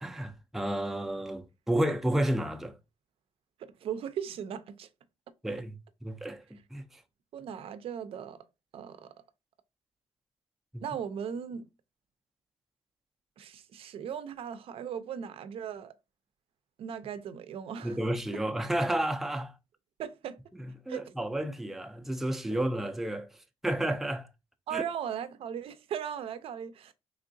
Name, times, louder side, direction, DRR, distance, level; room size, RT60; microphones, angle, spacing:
voice 1, 0.0-2.8 5.4-7.0 10.7-10.8 17.8-19.5 20.9-23.3 23.6-24.3 24.7-24.8, right 1 dB, 5° right, 0.4 m, -31 dB
voice 2, 3.6-4.9 7.3-8.4 8.7-9.1 10.8-11.7 13.4-15.9 16.8-18.0 20.0-20.4 20.9-21.0 24.7-26.9, right 8 dB, 65° right, 0.5 m, -38 dB
3.7 x 3.2 x 2.5 m
cardioid pair, 115°, 10 cm